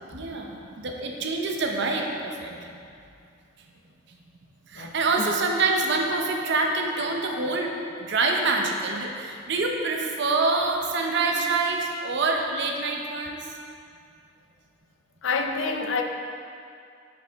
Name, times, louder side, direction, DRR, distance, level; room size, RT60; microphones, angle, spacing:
voice 1, 0.0-2.8 4.7-7.7 8.0-13.5, right 3 dB, 60° right, 2 dB, 0.6 m, -26 dB
voice 2, 4.8-5.3 15.2-16.0, left 4 dB, 70° left, 4 dB, 0.5 m, -28 dB
6.1 x 4.8 x 3.4 m, 2.4 s
head